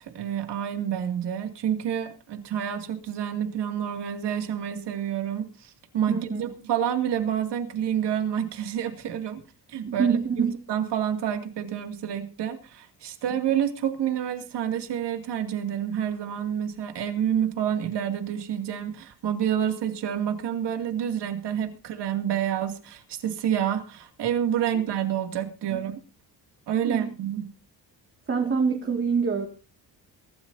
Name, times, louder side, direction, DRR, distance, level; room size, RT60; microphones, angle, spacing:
voice 1, 0.0-9.4 9.7-25.9 26.7-27.5, right 9 dB, 75° right, 6 dB, 2.5 m, -28 dB
voice 2, 6.1-6.5 9.9-10.5 25.7-25.8 26.8-27.1 28.3-29.5, right 6 dB, 30° right, 2 dB, 2.1 m, -25 dB
23.0 x 13.0 x 2.7 m, 0.33 s
cardioid pair, 140°, 41 cm